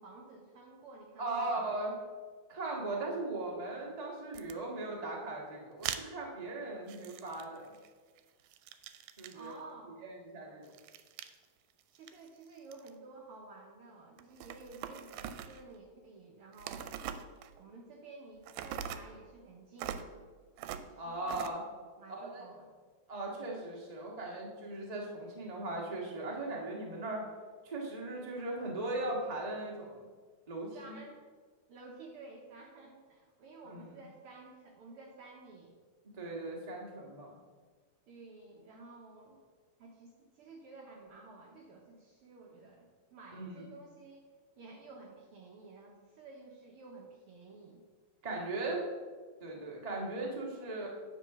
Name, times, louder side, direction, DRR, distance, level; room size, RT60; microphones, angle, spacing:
voice 1, 0.0-1.8 9.3-9.9 11.9-16.9 17.6-20.3 20.7-21.6 22.0-22.7 30.7-31.2 31.7-35.7 38.1-39.4 39.8-44.2 44.6-47.8, right 3 dB, 70° right, -1 dB, 1.3 m, -52 dB
voice 2, 1.2-1.9 2.5-7.7 9.2-9.6 10.0-10.6 21.0-21.6 22.1-22.5 23.1-27.3 27.6-30.1 30.5-31.0 33.6-33.9 36.1-37.4 43.3-43.7 48.2-48.8 49.4-50.9, right 2 dB, 55° right, -2 dB, 0.4 m, -38 dB
sound 1, 4.3-4.5 5.8-6.0 6.9-7.9 8.2-9.5 10.6-11.4 11.8-12.9 14.2-15.7 16.5-17.6 18.4-19.1 19.8-20.1 20.6-20.9 21.3-21.5, right 10 dB, 90° right, 2.0 m, -42 dB
9.1 x 4.3 x 5.9 m, 1.5 s
omnidirectional pair, 3.4 m